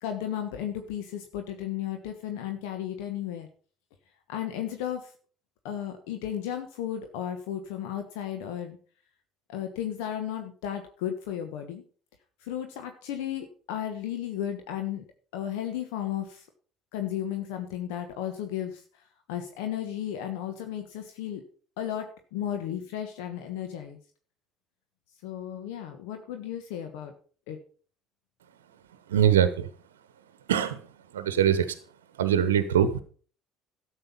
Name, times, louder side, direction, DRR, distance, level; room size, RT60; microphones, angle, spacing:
voice 1, 0.0-3.5 4.3-5.1 5.6-8.8 9.5-11.8 12.4-15.0 15.3-16.4 16.9-19.0 19.3-21.4 21.8-24.0 25.2-27.1 27.5-27.6, left 10 dB, 70° left, 6 dB, 1.3 m, -34 dB
voice 2, 29.1-29.7 30.5-30.8 31.1-31.7 32.2-33.0, right 9 dB, 80° right, 12 dB, 0.9 m, -22 dB
12.5 x 8.0 x 5.5 m, 0.43 s
hypercardioid pair, 60°, 0 cm